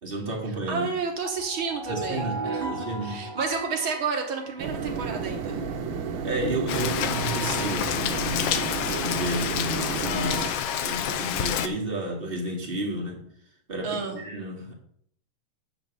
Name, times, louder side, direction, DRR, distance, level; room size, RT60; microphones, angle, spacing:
voice 1, 0.0-0.9 1.9-2.4 2.7-3.3 6.2-8.6 8.9-13.2 13.7-14.7, right 1 dB, 20° right, -1 dB, 1.7 m, -32 dB
voice 2, 0.7-5.6 13.8-14.2, right 5 dB, 60° right, 3 dB, 1.5 m, -31 dB
sound 1, 1.2-5.1, right 2 dB, 10° left, 1.9 m, -36 dB
sound 2, 4.6-10.5, right 5 dB, 85° right, 1.0 m, -32 dB
Rain, 6.7-11.7, left 9 dB, 75° left, 1.4 m, -28 dB
9.6 x 3.9 x 7.1 m, 0.65 s
omnidirectional pair, 3.3 m